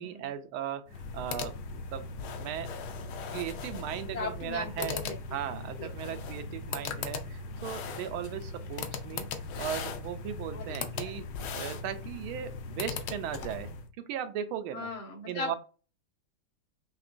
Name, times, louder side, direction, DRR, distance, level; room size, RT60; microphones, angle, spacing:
voice 1, 0.0-2.7 3.3-5.0 5.3-9.3 9.6-11.3 11.5-14.9 15.3-15.5, right 10 dB, 90° right, 9 dB, 1.5 m, -37 dB
sound 1, 0.9-13.9, left 5 dB, 70° left, 1.2 m, -38 dB
voice 2, 4.1-5.1 5.8-5.9 10.5-10.6 14.7-15.6, left 3 dB, 90° left, -2 dB, 2.6 m, -37 dB
5.7 x 2.9 x 2.5 m, 0.34 s
omnidirectional pair, 2.3 m